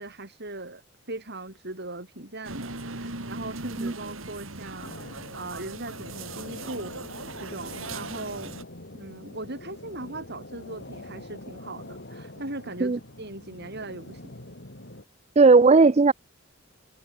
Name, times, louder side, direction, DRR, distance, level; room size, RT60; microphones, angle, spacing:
voice 1, 0.0-8.6 8.9-14.4, right 2 dB, 55° right, 7.5 m, -39 dB
sound 1, 2.4-8.6, right 3 dB, 70° right, 4.0 m, -39 dB
sound 2, 4.8-15.0, left 1 dB, 55° left, 4.1 m, -44 dB
voice 2, 15.4-16.1, right 4 dB, 30° right, 0.5 m, -16 dB
head